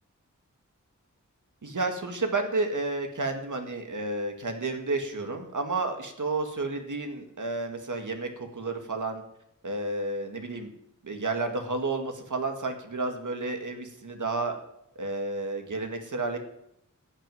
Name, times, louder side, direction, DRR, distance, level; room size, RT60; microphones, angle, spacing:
voice 1, 1.6-9.2 9.6-10.7 11.0-14.6 15.0-16.4, right 3 dB, 70° right, 5 dB, 1.9 m, -31 dB
13.5 x 6.2 x 9.2 m, 0.77 s
wide cardioid pair, 70°, 31 cm